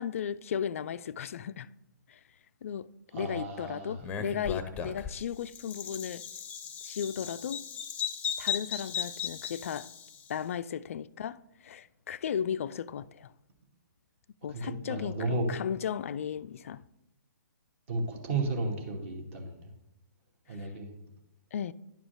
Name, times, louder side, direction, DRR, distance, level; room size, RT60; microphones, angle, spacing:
voice 1, 0.0-1.7 2.1-2.2 2.6-2.9 3.1-6.2 6.8-7.7 8.4-9.9 10.3-13.3 14.4-16.8 20.6-20.7 21.5-21.7, left 8 dB, 45° left, 0.3 m, -35 dB
voice 2, 3.1-4.0 14.5-15.6 17.9-19.6 20.5-20.9, right 2 dB, 40° right, 2.2 m, -33 dB
Bird vocalization bird call bird song, 4.0-10.3, left 8 dB, 15° left, 0.7 m, -36 dB
10.5 x 4.9 x 6.3 m
figure-of-eight pair, 130°, 10 cm